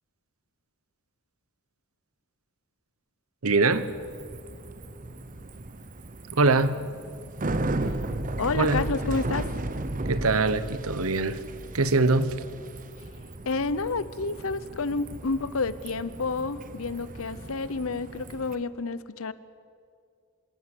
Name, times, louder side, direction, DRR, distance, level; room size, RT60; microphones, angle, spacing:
voice 1, 3.4-3.9 6.3-6.8 8.5-8.9 10.1-11.4 11.7-12.4, right 3 dB, 80° right, 1.0 m, -23 dB
Bicycle, 3.7-18.5, right 2 dB, 40° right, 1.0 m, -35 dB
voice 2, 8.4-9.5 13.5-19.3, left 4 dB, 70° left, 0.8 m, -29 dB
26.5 x 13.0 x 9.9 m
head